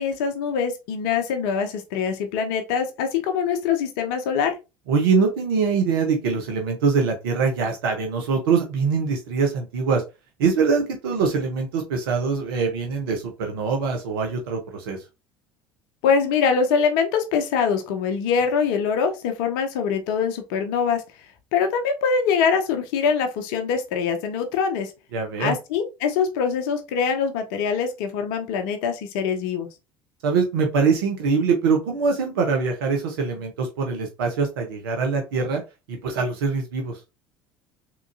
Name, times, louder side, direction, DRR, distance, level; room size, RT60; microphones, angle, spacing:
voice 1, 0.0-4.6 16.0-21.0 21.5-24.9 25.4-29.7, left 6 dB, 65° left, 6 dB, 0.6 m, -23 dB
voice 2, 4.9-10.0 10.4-15.0 25.1-25.5 30.2-35.6 35.9-37.0, right 5 dB, 70° right, 3 dB, 0.7 m, -23 dB
3.6 x 2.9 x 2.5 m, 0.27 s
figure-of-eight pair, 65°, 12 cm